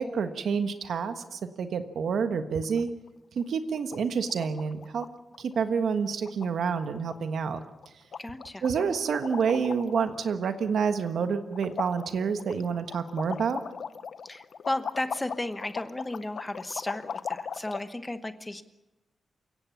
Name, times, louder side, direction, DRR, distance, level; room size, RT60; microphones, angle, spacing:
voice 1, 0.0-2.9 3.3-5.0 5.4-7.6 8.6-13.6, right 6 dB, 80° right, 8 dB, 1.4 m, -28 dB
sound 1, 2.6-3.1 3.4-3.5 3.7-4.0 4.3-5.1 5.3-5.6 5.9-6.0 6.2-6.8 7.1-7.2 7.5-7.9 8.1-10.1 10.4-11.2 11.5-17.8, left 6 dB, 60° left, 0.7 m, -38 dB
voice 2, 8.2-8.6 9.1-9.3 14.2-18.6, left 1 dB, 10° left, 11 dB, 1.0 m, -34 dB
28.5 x 17.0 x 7.2 m, 0.98 s
wide cardioid pair, 175°, 0 cm